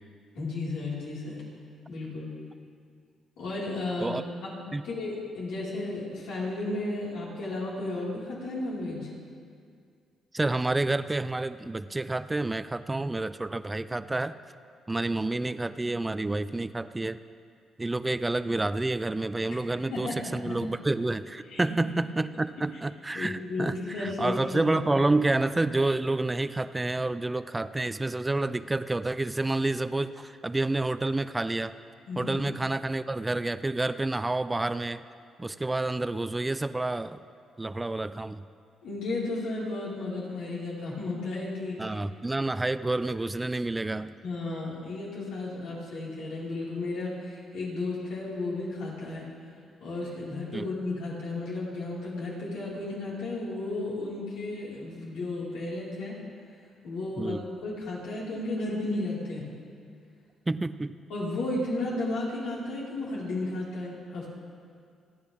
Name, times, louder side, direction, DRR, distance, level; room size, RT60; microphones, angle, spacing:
voice 1, 0.3-1.4 1.9-2.3 3.4-9.1 19.9-20.6 21.5-21.6 23.1-24.8 32.1-32.4 38.8-42.0 44.2-49.3 49.8-56.1 56.8-59.5 61.1-64.3, left 2 dB, 90° left, -7 dB, 5.0 m, -33 dB
voice 2, 10.3-14.4 14.9-17.2 17.8-31.7 32.2-35.0 35.4-37.2 37.6-38.4 41.8-44.1 50.5-50.6 57.2-57.4 60.5-60.9, right 2 dB, 15° right, 13 dB, 0.5 m, -29 dB
29.5 x 10.0 x 3.6 m, 2.2 s
cardioid pair, 90°, 0 cm